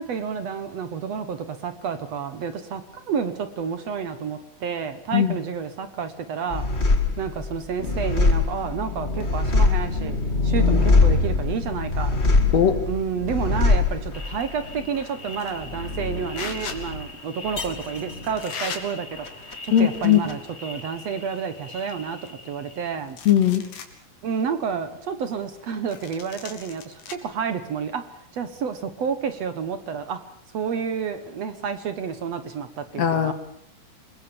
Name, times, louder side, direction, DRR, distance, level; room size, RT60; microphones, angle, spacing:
voice 1, 0.0-6.9 7.2-10.2 10.4-12.2 12.9-23.2 24.2-30.2 30.5-33.3, right 6 dB, 60° right, 10 dB, 2.2 m, -30 dB
sound 1, 6.5-21.4 21.7-22.5, left 3 dB, 25° left, 1.6 m, -24 dB
sound 2, 15.3-15.6 16.3-16.8 17.7-17.8 18.4-18.8 19.7-20.4 20.7-20.8 21.3-21.4 21.7-22.7 23.1-23.9 24.4-24.5 25.9-27.1, left 6 dB, 85° left, 4.2 m, -37 dB
voice 2, 19.7-20.2 23.3-23.6 33.0-33.3, left 10 dB, 60° left, 10 dB, 2.5 m, -18 dB
27.0 x 21.5 x 7.0 m, 0.66 s
omnidirectional pair, 3.8 m